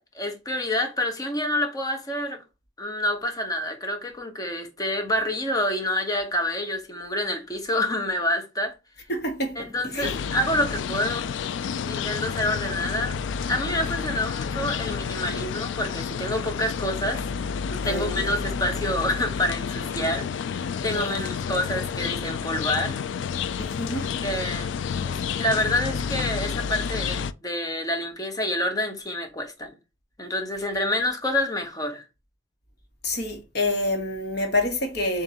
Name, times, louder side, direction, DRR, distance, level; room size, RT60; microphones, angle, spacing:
voice 1, 0.0-2.4 2.8-8.7 9.6-11.3 11.9-13.1 13.5-17.2 17.7-23.0 24.2-24.7 25.0-29.7 30.2-32.0, left 1 dB, 20° left, 0.8 m, -28 dB
voice 2, 9.1-10.2 17.8-18.3 20.8-21.3 23.6-24.1 33.0-35.2, left 1 dB, 60° left, 1.3 m, -28 dB
sound 1, 10.0-27.3, left 6 dB, 85° left, 0.3 m, -30 dB
7.2 x 2.5 x 2.8 m
head